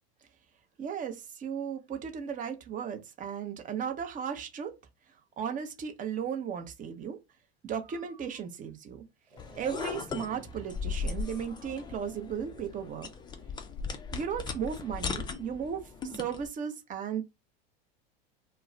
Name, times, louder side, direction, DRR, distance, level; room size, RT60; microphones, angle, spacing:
voice 1, 0.8-4.7 5.4-7.2 7.6-9.0 9.6-13.1 14.1-17.2, right 7 dB, 25° right, 0.6 m, -35 dB
Breathing, 7.8-8.5 9.3-10.0 11.2-12.0, right 3 dB, 80° right, 0.8 m, -54 dB
sound 1, 9.4-16.5, left 5 dB, 15° left, 0.4 m, -38 dB
2.3 x 2.1 x 3.6 m
hypercardioid pair, 85°, 30 cm